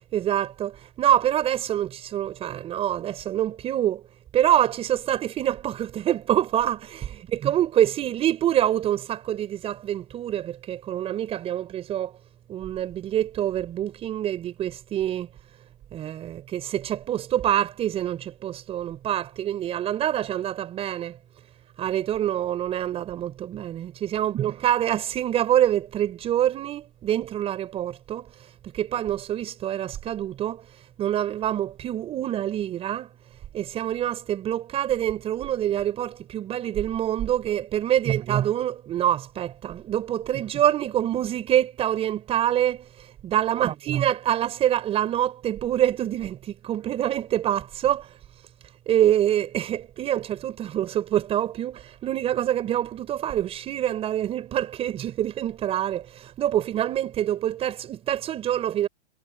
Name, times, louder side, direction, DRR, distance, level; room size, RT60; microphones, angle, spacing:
voice 1, 0.1-4.0 4.3-12.1 12.5-15.3 15.9-21.2 21.8-33.1 33.5-48.1 48.9-58.9, right 11 dB, 15° right, 5.4 m, -26 dB
hypercardioid pair, 165°, 34 cm